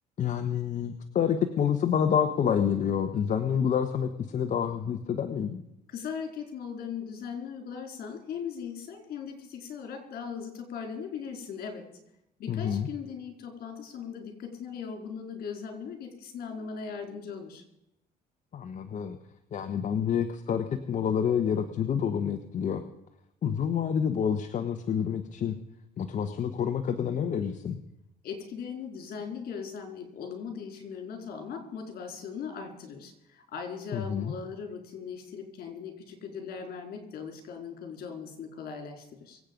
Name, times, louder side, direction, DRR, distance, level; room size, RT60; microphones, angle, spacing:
voice 1, 0.2-5.6 12.5-12.9 18.5-19.2 19.5-22.8 23.4-25.5 26.0-27.8 33.9-34.3, left 8 dB, 45° left, 7 dB, 1.2 m, -28 dB
voice 2, 5.9-11.9 12.4-17.6 28.2-39.4, left 6 dB, 65° left, 4 dB, 4.2 m, -39 dB
24.5 x 8.5 x 5.3 m, 0.82 s
cardioid pair, 110°, 17 cm